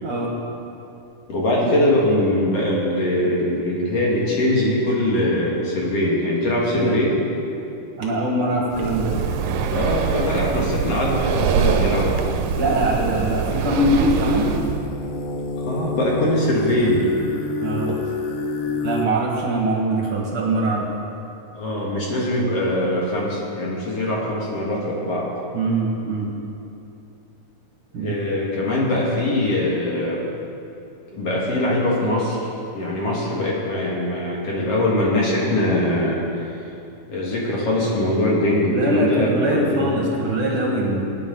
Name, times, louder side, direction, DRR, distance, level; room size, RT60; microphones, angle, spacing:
voice 1, 1.3-7.2 9.7-12.1 15.6-17.1 21.5-25.3 28.0-30.3 31.1-32.5 32.7-36.5 37.1-39.9, left 1 dB, 50° left, -4 dB, 2.5 m, -22 dB
voice 2, 8.0-9.1 12.6-14.5 17.6-18.0 18.8-20.9 25.5-26.3 27.9-28.2 38.6-41.0, right 1 dB, 50° right, -2 dB, 2.1 m, -22 dB
Breathing, 8.7-14.8, right 7 dB, 75° right, 2.3 m, -23 dB
sound 1, 13.7-19.1, left 4 dB, 85° left, 2.7 m, -29 dB
18.0 x 9.7 x 3.9 m, 2.8 s
omnidirectional pair, 4.0 m